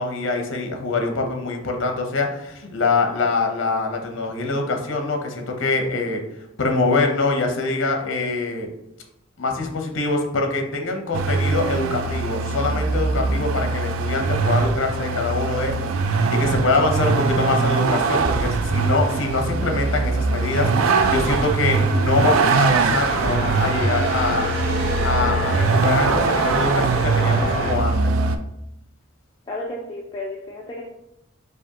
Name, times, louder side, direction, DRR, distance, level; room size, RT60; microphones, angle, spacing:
voice 1, 0.0-6.2 6.6-8.7 9.4-15.7 16.0-24.5 25.0-28.1, left 3 dB, 65° left, 3 dB, 0.7 m, -24 dB
Vehicle, 11.1-28.4, right 4 dB, 85° right, 0.3 m, -22 dB
sound 1, 20.2-27.8, right 1 dB, 65° right, 0.7 m, -28 dB
voice 2, 29.5-30.8, left 1 dB, 20° left, -3 dB, 0.4 m, -32 dB
4.7 x 2.5 x 2.8 m, 0.85 s
head